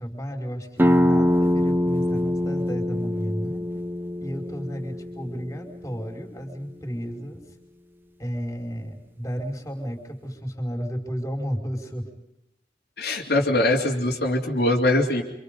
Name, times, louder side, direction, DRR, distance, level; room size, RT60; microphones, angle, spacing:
voice 1, 0.0-3.6 4.2-7.4 8.2-12.1, equal, 15° left, 2 dB, 4.9 m, -32 dB
sound 1, 0.8-6.2, left 1 dB, 10° right, 1.0 m, -24 dB
voice 2, 13.0-15.2, left 1 dB, 60° left, -1 dB, 3.1 m, -22 dB
27.0 x 27.0 x 5.4 m, 0.86 s
head